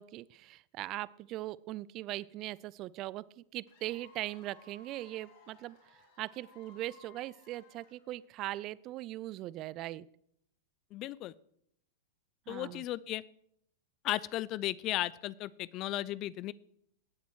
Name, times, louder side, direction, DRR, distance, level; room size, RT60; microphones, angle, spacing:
voice 1, 0.0-10.1 12.5-12.8, right 16 dB, 40° right, 21 dB, 0.4 m, -40 dB
Cheering / Applause / Crowd, 3.7-8.4, left 4 dB, 60° left, 4.5 m, -60 dB
voice 2, 10.9-11.3 12.5-13.2 14.0-16.5, left 15 dB, 40° left, 20 dB, 0.4 m, -35 dB
17.5 x 8.1 x 4.7 m, 0.71 s
hypercardioid pair, 105°, 0 cm